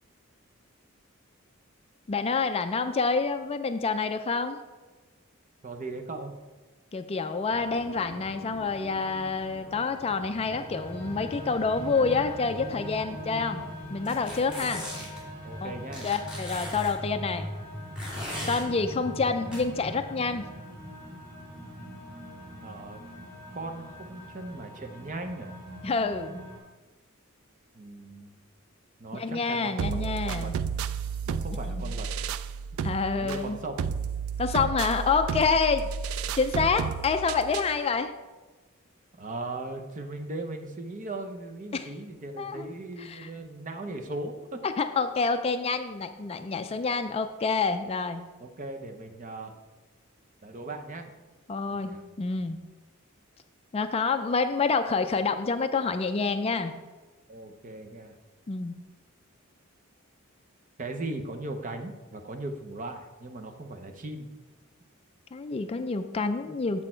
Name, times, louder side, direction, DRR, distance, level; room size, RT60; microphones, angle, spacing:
voice 1, 2.1-4.6 6.9-13.6 13.9-14.8 15.6-15.7 16.0-17.5 18.5-20.5 25.8-26.4 29.1-30.5 31.7-32.0 32.8-33.6 34.4-35.9 36.3-38.1 41.7-41.9 42.4-42.7 43.0-43.3 44.6-48.2 51.5-52.6 53.7-56.7 58.5-58.7 65.3-66.8, left 4 dB, 30° left, 9 dB, 0.3 m, -28 dB
voice 2, 5.6-6.4 14.6-14.9 15.4-16.1 22.6-23.1 23.5-25.6 27.7-28.3 29.0-30.5 31.3-32.1 33.1-33.8 39.2-44.6 48.4-49.6 50.4-51.1 51.7-52.0 57.3-58.1 60.8-64.3, right 2 dB, 35° right, 5 dB, 0.7 m, -38 dB
sound 1, 7.5-26.6, equal, 10° left, 2.5 m, -41 dB
sound 2, 14.0-15.2 15.9-16.9 18.0-18.6 19.5-19.6, left 1 dB, 5° right, 2.5 m, -38 dB
sound 3, 29.8-37.8, right 6 dB, 75° right, 0.3 m, -32 dB
7.4 x 6.2 x 4.4 m, 1.2 s
head